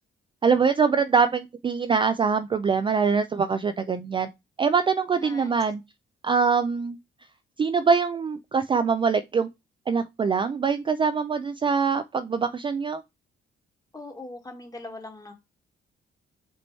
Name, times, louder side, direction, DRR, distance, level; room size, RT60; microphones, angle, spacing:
voice 1, 0.4-4.3 4.6-5.8 6.2-7.0 7.6-9.5 9.9-13.0, right 5 dB, 25° right, 0.3 m, -23 dB
voice 2, 5.1-5.5 13.9-15.3, left 2 dB, 20° left, 1.4 m, -41 dB
5.2 x 3.0 x 3.1 m
cardioid pair, 90°, 20 cm